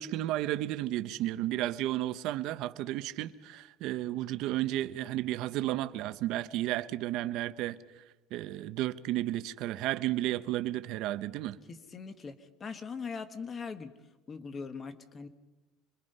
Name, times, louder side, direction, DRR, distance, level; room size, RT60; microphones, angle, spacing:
voice 1, 0.0-7.8 8.3-11.6, right 14 dB, 50° right, 0.8 m, -33 dB
voice 2, 11.7-13.9 14.3-15.3, left 5 dB, 20° left, 1.2 m, -41 dB
26.5 x 23.0 x 5.5 m
cardioid pair, 180°, 0 cm